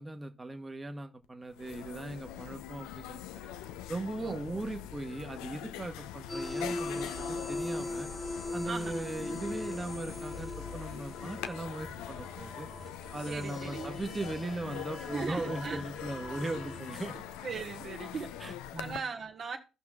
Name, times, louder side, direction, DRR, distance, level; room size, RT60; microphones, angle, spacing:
voice 1, 0.0-3.5 3.9-8.1 8.5-12.7 13.1-17.2 18.4-19.0, right 2 dB, 20° right, 1.2 m, -39 dB
sound 1, 1.2-1.3 1.5-19.0, left 11 dB, 75° left, 0.4 m, -43 dB
voice 2, 4.2-4.6 8.7-9.1 13.3-14.0 15.1-15.8 17.4-18.3 18.7-19.6, right 5 dB, 55° right, 1.2 m, -39 dB
sound 2, 6.3-16.9, left 1 dB, 20° left, 1.1 m, -40 dB
15.0 x 5.9 x 2.4 m
hypercardioid pair, 45°, 0 cm